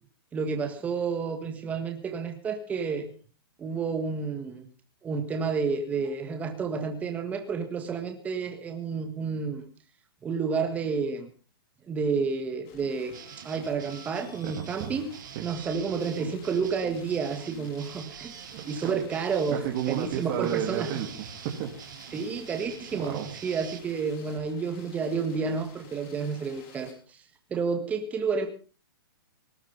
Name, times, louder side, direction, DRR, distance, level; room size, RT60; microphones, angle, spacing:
voice 1, 0.3-3.1 3.6-4.7 5.0-9.7 10.2-11.3 11.8-13.1 13.4-15.1 15.4-18.3 18.7-19.6 19.9-20.9 22.1-27.2 27.5-28.5, right 5 dB, 10° right, 5 dB, 1.6 m, -30 dB
sound 1, 12.6-26.9, left 5 dB, 35° left, 5.2 m, -53 dB
sound 2, 13.1-23.8, right 10 dB, 55° right, 1.5 m, -45 dB
voice 2, 14.4-15.0 15.3-15.5 18.5-19.0 19.5-22.1 22.9-23.3, right 11 dB, 35° right, 2 dB, 2.5 m, -33 dB
19.0 x 12.0 x 5.6 m, 0.37 s
hypercardioid pair, 160°, 12 cm